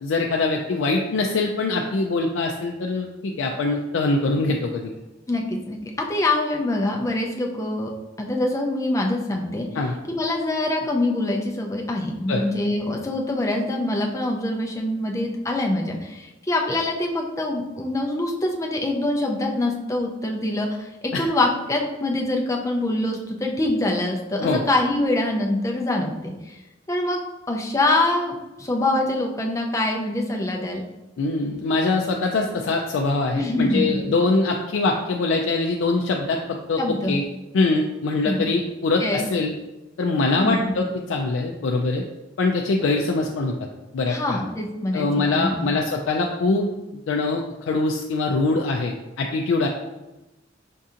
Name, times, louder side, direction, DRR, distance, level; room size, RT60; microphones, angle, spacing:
voice 1, 0.0-4.9 9.7-9.9 12.3-12.4 21.1-21.2 24.4-24.7 31.2-36.4 36.7-36.8 37.1-37.2 37.5-39.5 40.0-42.0 42.4-43.5 43.9-44.4 44.9-46.7 47.1-49.7, left 3 dB, 80° left, 1 dB, 0.3 m, -23 dB
voice 2, 5.3-7.9 8.2-9.7 10.1-26.6 26.9-27.2 27.5-30.8 33.3-34.0 36.8-37.2 38.2-38.4 39.0-39.2 40.2-40.8 44.1-45.7, left 2 dB, 15° left, 1 dB, 0.4 m, -24 dB
5.3 x 2.7 x 2.4 m, 1.0 s
head